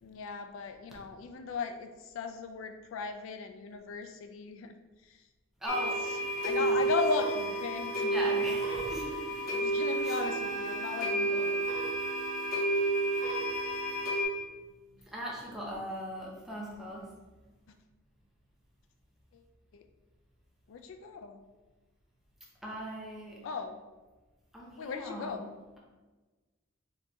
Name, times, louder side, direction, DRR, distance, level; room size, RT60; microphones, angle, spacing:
voice 1, 0.0-4.7 5.1-5.2 6.4-8.6 9.5-11.2 19.3-19.4 19.7-19.8 20.7-21.5 23.4-23.8 24.8-25.5, left 5 dB, 70° left, 7 dB, 0.3 m, -37 dB
voice 2, 5.6-6.2 6.5-6.8 8.0-9.2 10.0-10.2 11.0-11.6 15.1-17.1 22.6-23.4 24.5-25.5, equal, ahead, -5 dB, 0.8 m, -39 dB
sound 1, 5.7-14.2, right 2 dB, 45° left, 1.3 m, -31 dB
4.2 x 3.2 x 3.0 m, 1.2 s
head